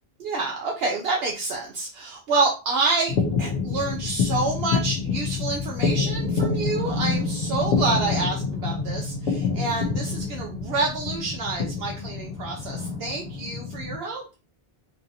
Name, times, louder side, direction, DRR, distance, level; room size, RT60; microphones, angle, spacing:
voice 1, 0.2-14.2, right 3 dB, 75° right, 0 dB, 0.8 m, -28 dB
sound 1, 3.1-14.0, left 5 dB, 70° left, 0.8 m, -27 dB
3.8 x 2.5 x 2.8 m, 0.31 s
omnidirectional pair, 1.0 m